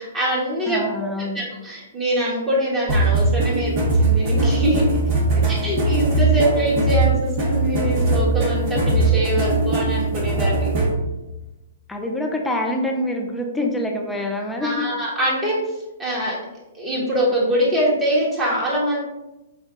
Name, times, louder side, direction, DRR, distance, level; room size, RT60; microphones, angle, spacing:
voice 1, 0.0-1.1 1.3-4.8 5.6-10.7 14.6-15.6 16.0-16.4 16.8-19.0, equal, 15° right, -6 dB, 1.4 m, -23 dB
voice 2, 0.7-1.5 5.3-5.7 11.9-14.9, left 1 dB, 5° left, 1 dB, 0.5 m, -26 dB
sound 1, 2.9-10.9, right 2 dB, 45° right, 1.2 m, -20 dB
5.5 x 2.3 x 3.7 m, 0.99 s
hypercardioid pair, 120°, 0 cm